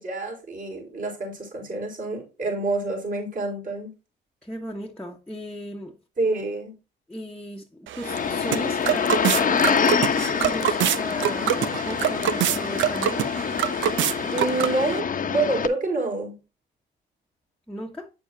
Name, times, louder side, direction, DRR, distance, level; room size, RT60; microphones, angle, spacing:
voice 1, 0.0-3.9 6.2-6.7 14.3-16.3, right 2 dB, 45° right, 4.5 m, -27 dB
voice 2, 4.4-6.0 7.1-13.3 17.7-18.1, equal, 5° left, 1.1 m, -36 dB
sound 1, 7.9-15.0, right 10 dB, 75° right, 0.6 m, -26 dB
sound 2, 8.0-15.7, left 7 dB, 40° left, 0.9 m, -26 dB
8.4 x 7.0 x 2.7 m
cardioid pair, 90°, 20 cm